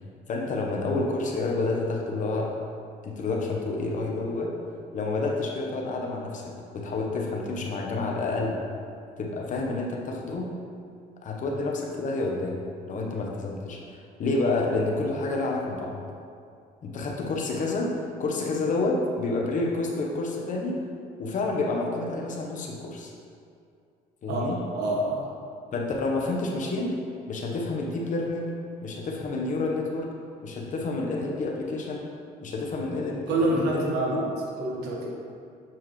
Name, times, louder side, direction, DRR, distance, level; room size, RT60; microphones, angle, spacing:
voice 1, 0.3-2.5 3.0-4.5 4.9-8.6 9.2-10.5 11.2-15.9 16.8-17.9 18.2-20.8 21.2-23.1 24.2-24.6 25.7-26.9 27.3-28.5 28.8-30.1 30.4-32.0 32.4-33.8 34.1-34.2, left 3 dB, 50° left, 0 dB, 1.0 m, -29 dB
voice 2, 24.7-25.3 33.3-34.3 34.6-35.1, right 1 dB, 85° right, -3 dB, 1.4 m, -26 dB
7.5 x 4.5 x 3.1 m, 2.4 s
cardioid pair, 110°, 17 cm